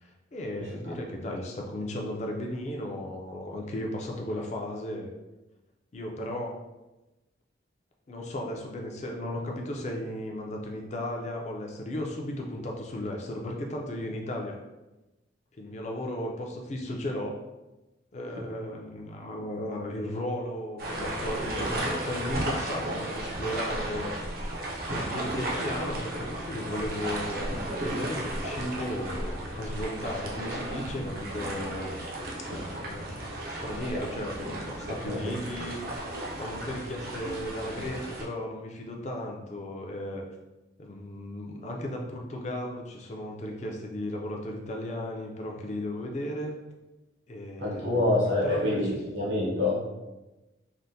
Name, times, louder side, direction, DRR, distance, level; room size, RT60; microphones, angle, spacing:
voice 1, 0.0-5.1 5.9-6.6 8.1-14.6 15.6-17.4 18.1-24.1 24.9-31.9 32.4-33.2 33.6-36.1 36.4-40.2 40.8-46.5 47.3-48.0 48.4-49.0, left 1 dB, 35° left, 0 dB, 0.4 m, -35 dB
voice 2, 0.6-0.9 18.4-18.5 25.8-25.9 35.1-35.2 47.6-49.8, left 2 dB, 70° right, -7 dB, 0.9 m, -27 dB
sound 1, 20.8-38.2, right 1 dB, 50° right, 0.5 m, -34 dB
3.4 x 2.1 x 2.7 m, 1.0 s
head